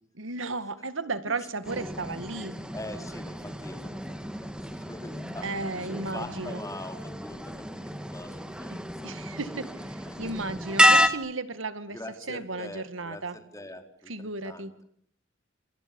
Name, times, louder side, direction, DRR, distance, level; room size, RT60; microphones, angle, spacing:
voice 1, 0.1-2.6 5.4-6.6 8.7-12.0 12.3-13.4 14.1-14.7, right 3 dB, 85° right, 12 dB, 2.2 m, -34 dB
sound 1, 1.6-11.1, equal, 5° right, 2.2 m, -29 dB
voice 2, 2.7-5.5 5.9-8.9 10.0-10.3 11.9-14.8, left 1 dB, 15° left, 6 dB, 4.3 m, -43 dB
29.5 x 27.5 x 7.2 m, 0.63 s
head